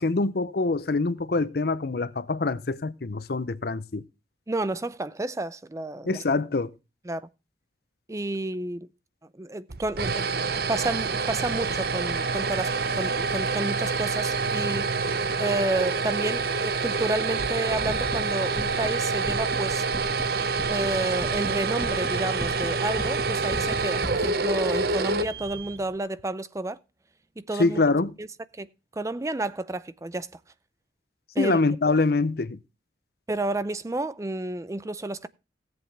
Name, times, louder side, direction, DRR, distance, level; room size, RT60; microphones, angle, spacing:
voice 1, 0.0-4.0 6.1-6.7 27.6-28.1 31.4-32.6, left 3 dB, 60° left, 0.7 m, -25 dB
voice 2, 4.5-6.2 7.1-7.2 8.1-8.9 9.3-19.8 20.7-26.8 27.4-27.8 28.2-28.3 28.6-30.3 31.4-31.6 33.3-35.3, right 2 dB, 15° right, 0.5 m, -31 dB
sound 1, 9.7-25.9, right 4 dB, 60° right, 0.8 m, -27 dB
sound 2, 17.6-24.3, equal, 15° left, 1.7 m, -39 dB
17.0 x 7.9 x 3.3 m
head